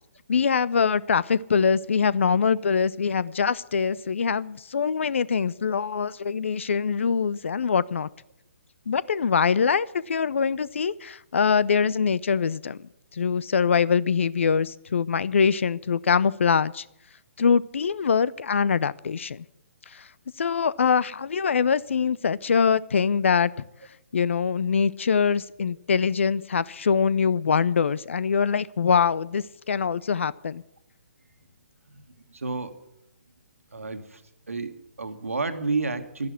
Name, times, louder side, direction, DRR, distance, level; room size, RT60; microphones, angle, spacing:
voice 1, 0.3-8.1 8.9-12.8 13.1-16.8 17.4-19.4 19.9-20.0 20.4-23.5 24.1-30.6, left 6 dB, 60° left, 20 dB, 0.6 m, -23 dB
voice 2, 31.9-32.8 33.7-34.2 34.5-36.3, right 3 dB, 75° right, 8 dB, 1.8 m, -31 dB
12.0 x 10.5 x 9.5 m, 0.80 s
figure-of-eight pair, 135°, 7 cm